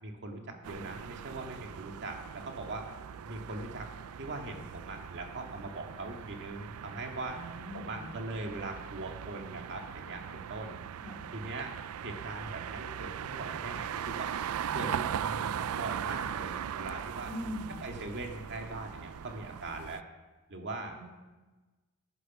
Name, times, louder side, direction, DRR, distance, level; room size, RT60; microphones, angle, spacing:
voice 1, 0.0-2.9 3.2-3.9 4.2-7.4 7.7-10.8 11.3-11.7 12.0-14.3 14.7-17.3 17.8-20.0 20.5-20.9, right 2 dB, 55° right, 3 dB, 1.9 m, -41 dB
sound 1, 0.6-20.0, right 8 dB, 80° right, 0.4 m, -39 dB
voice 2, 7.3-8.1 11.0-11.2 17.2-17.8 20.9-21.0, left 1 dB, 5° right, -9 dB, 3.2 m, -41 dB
15.0 x 9.8 x 6.0 m, 1.2 s
head